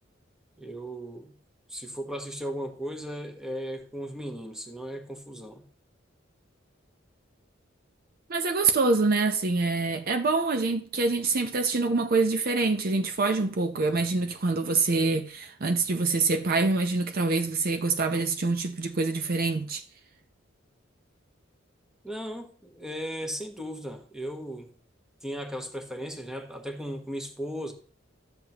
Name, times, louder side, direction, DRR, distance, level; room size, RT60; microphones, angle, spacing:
voice 1, 0.6-1.4 1.7-5.7 22.0-24.7 25.2-27.7, equal, 5° right, 1.0 m, -36 dB
voice 2, 8.3-19.8, right 3 dB, 50° right, 0.6 m, -25 dB
12.0 x 7.4 x 2.9 m
head